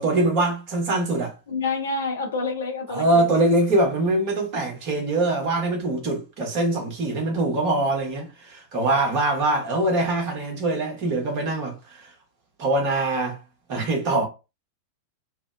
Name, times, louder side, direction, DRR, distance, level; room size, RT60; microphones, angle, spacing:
voice 1, 0.0-1.3 2.9-12.1 12.6-13.4 13.7-14.3, right 2 dB, 40° right, 0.9 m, -23 dB
voice 2, 1.5-3.4 14.2-14.3, left 3 dB, 65° left, 0.6 m, -28 dB
2.6 x 2.0 x 2.3 m
figure-of-eight pair, 90°, 0 cm